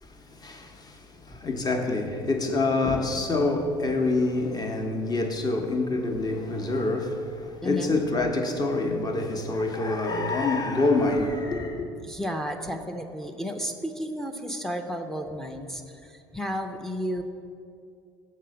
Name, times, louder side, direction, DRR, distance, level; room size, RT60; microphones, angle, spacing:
voice 1, 0.0-11.9, left 2 dB, 30° left, 1.0 m, -26 dB
voice 2, 7.6-8.0 9.5-9.6 12.0-17.2, equal, 5° left, 0.6 m, -33 dB
6.5 x 4.2 x 6.4 m
hypercardioid pair, 70°, 13 cm